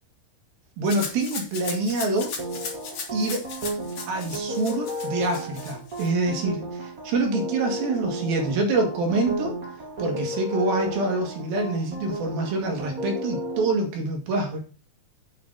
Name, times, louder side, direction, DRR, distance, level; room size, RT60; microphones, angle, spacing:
voice 1, 0.8-2.4 3.1-3.5 4.1-6.7 7.1-9.6 10.0-14.6, right 2 dB, 70° right, 2 dB, 4.0 m, -26 dB
Rattle (instrument), 0.9-6.1, left 5 dB, 55° left, 3.7 m, -37 dB
sound 1, 2.4-13.7, equal, 30° right, 2.0 m, -33 dB
9.1 x 5.8 x 6.7 m, 0.36 s
omnidirectional pair, 4.4 m